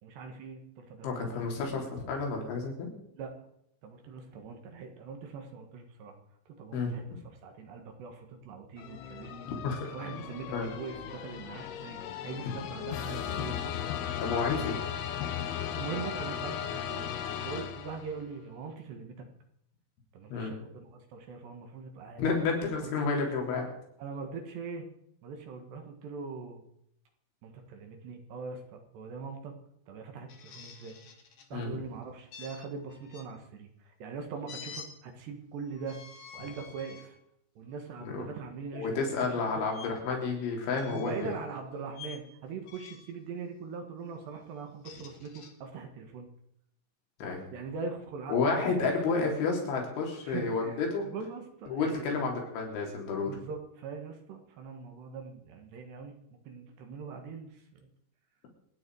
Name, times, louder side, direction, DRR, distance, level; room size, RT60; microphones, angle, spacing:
voice 1, 0.0-1.5 3.1-3.3 3.8-6.2 6.6-9.5 9.8-13.9 15.7-17.0 17.3-19.2 20.1-22.2 22.8-23.0 24.0-24.9 25.2-26.6 27.4-29.5 29.9-31.0 31.5-36.0 36.3-37.2 37.6-39.6 40.9-46.3 47.5-49.3 50.2-52.1 53.3-57.9, right 5 dB, 70° right, 4 dB, 3.7 m, -42 dB
voice 2, 1.0-2.9 6.7-6.9 9.5-9.9 10.5-10.7 14.2-14.8 20.3-20.5 22.2-23.7 31.5-31.7 38.0-38.3 38.7-41.3 47.2-47.4 48.3-51.1 51.7-53.3, left 4 dB, 85° left, 0 dB, 5.8 m, -30 dB
sound 1, 8.8-18.3, left 9 dB, 70° left, 2.8 m, -36 dB
sound 2, 30.3-31.5 32.3-33.3 34.5-34.9 35.7-37.1 37.7-37.9 39.7-39.9 40.7-41.3 41.9-42.2 42.6-43.2 44.6-45.5, left 7 dB, 55° left, 2.1 m, -48 dB
27.5 x 9.8 x 4.8 m, 0.76 s
omnidirectional pair, 5.3 m